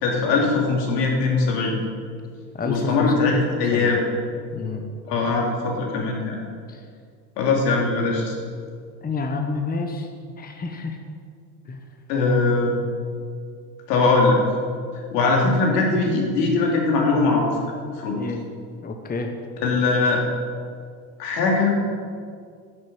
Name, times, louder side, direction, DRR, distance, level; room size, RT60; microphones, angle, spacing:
voice 1, 0.0-1.8 2.6-4.0 5.1-6.4 7.4-8.3 12.1-12.7 13.9-14.4 15.1-17.6 18.0-18.2 19.6-20.2 21.2-21.8, left 3 dB, 70° left, -1 dB, 3.3 m, -21 dB
voice 2, 2.5-3.9 4.5-4.9 6.7-6.8 9.0-10.1 10.4-11.0 11.6-11.8 18.1-18.4 18.8-19.3, left 3 dB, 20° left, 4 dB, 1.3 m, -29 dB
10.5 x 7.4 x 7.7 m, 2.1 s
hypercardioid pair, 80°, 50 cm